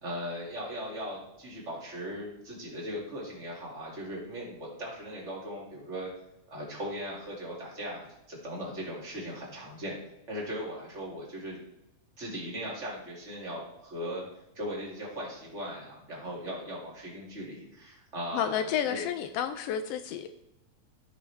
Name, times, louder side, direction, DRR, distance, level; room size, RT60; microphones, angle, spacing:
voice 1, 0.0-6.1 6.5-10.0 10.3-11.6 12.2-14.2 14.5-19.0, equal, 25° right, -5 dB, 2.7 m, -38 dB
voice 2, 18.3-20.3, left 9 dB, 85° left, 9 dB, 1.4 m, -31 dB
14.0 x 6.1 x 3.4 m, 0.86 s
omnidirectional pair, 3.4 m